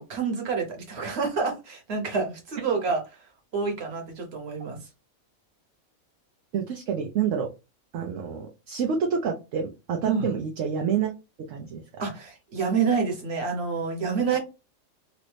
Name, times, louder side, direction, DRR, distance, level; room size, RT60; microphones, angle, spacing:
voice 1, 0.0-3.2 3.5-4.8 10.0-10.2 12.0-14.4, right 5 dB, 50° right, 2 dB, 1.3 m, -28 dB
voice 2, 6.5-7.5 7.9-11.1 11.5-11.8 14.3-14.4, right 7 dB, 70° right, 2 dB, 0.9 m, -28 dB
3.0 x 2.6 x 3.2 m, 0.27 s
omnidirectional pair, 1.4 m